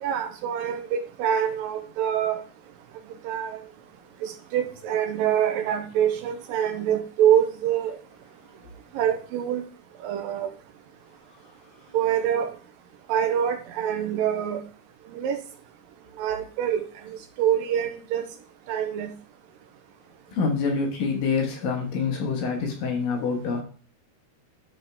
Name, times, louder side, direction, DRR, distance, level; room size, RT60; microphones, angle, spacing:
voice 1, 0.0-2.4 3.2-3.6 4.2-8.0 8.9-9.6 10.0-10.5 11.9-12.5 13.1-14.6 15.1-15.4 16.2-16.8 17.4-18.3 18.7-19.1, right 9 dB, 75° right, 2.2 m, -25 dB
voice 2, 20.3-23.6, left 5 dB, 65° left, 2.9 m, -26 dB
13.0 x 5.1 x 3.6 m
omnidirectional pair, 4.7 m